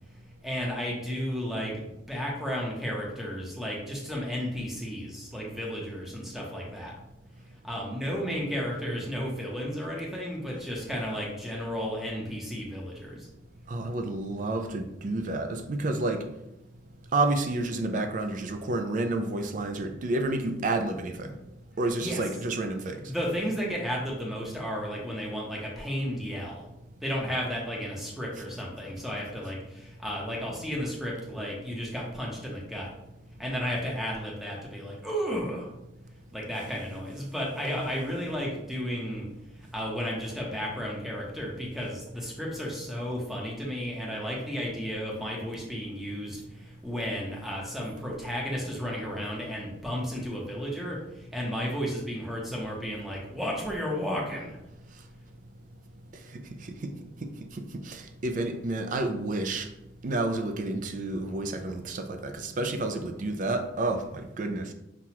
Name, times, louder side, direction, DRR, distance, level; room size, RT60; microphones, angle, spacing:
voice 1, 0.4-6.9 7.6-13.3 22.0-22.2 23.0-26.7 27.0-32.9 33.4-35.7 36.3-39.2 39.5-54.6, equal, ahead, -3 dB, 0.8 m, -33 dB
voice 2, 13.7-16.2 17.1-21.3 21.8-23.0 56.8-56.9 57.9-59.7 60.0-64.7, right 2 dB, 45° right, 7 dB, 0.4 m, -30 dB
5.8 x 2.4 x 2.9 m, 0.88 s
head